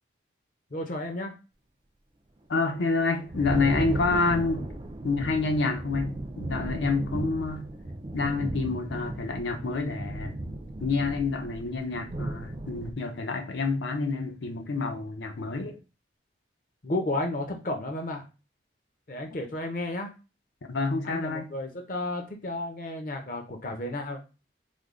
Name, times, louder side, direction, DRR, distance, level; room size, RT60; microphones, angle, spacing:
voice 1, 0.7-1.3 16.8-18.3 19.1-20.1 21.0-24.2, left 1 dB, 45° left, 0.6 m, -32 dB
voice 2, 2.5-4.7 5.0-7.7 8.1-10.4 10.8-15.8 20.7-21.5, left 3 dB, 85° left, 0.6 m, -28 dB
Thunder, 2.8-12.9, right 1 dB, 25° right, 0.4 m, -35 dB
3.4 x 2.1 x 3.6 m
head